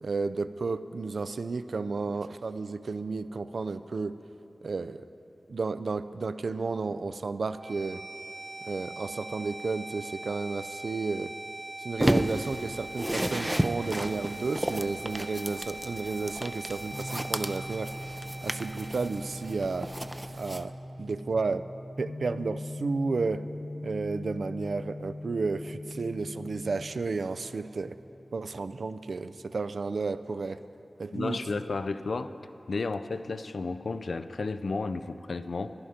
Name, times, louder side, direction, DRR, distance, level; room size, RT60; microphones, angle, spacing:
voice 1, 0.0-4.2 4.6-5.0 5.5-8.0 8.6-11.3 11.8-18.0 18.4-19.9 20.3-20.7 21.0-21.6 22.0-23.5 23.8-28.0 28.3-30.6 31.0-31.6, right 4 dB, 80° right, 12 dB, 0.3 m, -32 dB
sound 1, 7.4-21.4, right 2 dB, 60° right, 1.2 m, -43 dB
sound 2, 12.0-20.6, right 1 dB, 15° right, 0.4 m, -33 dB
sound 3, 16.9-30.5, left 1 dB, 60° left, 1.0 m, -42 dB
voice 2, 31.1-32.3 32.7-35.7, left 3 dB, 80° left, 11 dB, 0.4 m, -32 dB
11.5 x 10.5 x 5.1 m, 2.8 s
wide cardioid pair, 55°, 0 cm